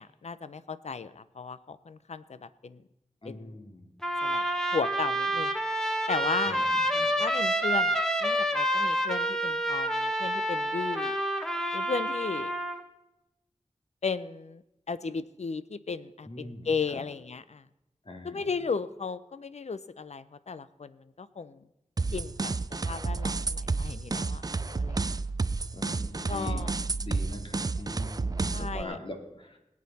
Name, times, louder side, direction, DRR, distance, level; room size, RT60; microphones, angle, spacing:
voice 1, 0.0-2.8 3.2-3.6 4.2-4.4 4.7-5.5 6.1-6.6 7.2-11.1 11.7-12.5 14.0-14.6 14.9-17.6 18.2-21.6 22.1-25.2 26.3-26.7 28.5-29.0, left 5 dB, 65° left, 15 dB, 0.6 m, -35 dB
voice 2, 3.2-3.9 6.4-6.6 6.9-7.1 16.2-17.0 18.1-18.5 25.7-26.6 27.0-29.6, left 1 dB, 45° left, 3 dB, 2.3 m, -42 dB
Trumpet, 4.0-12.8, right 1 dB, 5° left, 1.5 m, -28 dB
sound 1, 22.0-28.8, right 3 dB, 30° right, 0.4 m, -31 dB
20.5 x 8.6 x 4.2 m, 0.91 s
wide cardioid pair, 60°, 12 cm